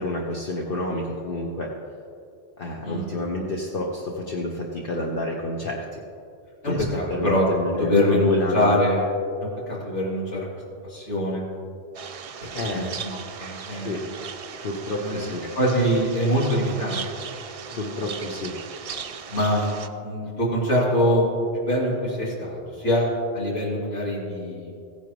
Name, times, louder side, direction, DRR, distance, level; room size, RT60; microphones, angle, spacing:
voice 1, 0.0-1.8 2.6-6.0 6.6-8.8 12.5-12.9 13.8-14.1 14.6-15.5 17.7-18.6, left 1 dB, 50° left, -1 dB, 1.1 m, -29 dB
voice 2, 6.6-7.5 7.8-9.1 9.4-10.4 10.9-11.4 12.7-14.0 15.0-17.0 17.7-17.8 19.3-23.1 23.3-24.7, equal, 80° left, -6 dB, 3.2 m, -24 dB
sound 1, 11.9-19.9, right 7 dB, 65° right, 0.3 m, -38 dB
16.0 x 10.0 x 3.1 m, 2.5 s
omnidirectional pair, 1.2 m